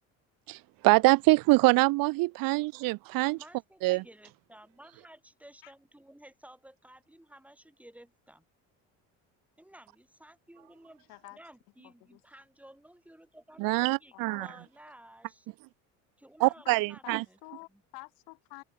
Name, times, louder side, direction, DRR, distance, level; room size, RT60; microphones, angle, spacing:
voice 1, 0.8-3.4 3.8-4.0 13.6-14.5 16.4-17.2, right 22 dB, 75° right, 1.1 m, -24 dB
voice 2, 3.3-8.5 9.6-11.0 11.3-14.1 14.4-15.5 16.2-17.4 17.7-17.8, right 1 dB, 5° right, 7.0 m, -54 dB
voice 3, 11.8-12.2 13.9-14.6 16.6-18.6, left 28 dB, 85° left, 5.2 m, -50 dB
open air
cardioid pair, 105°, 35 cm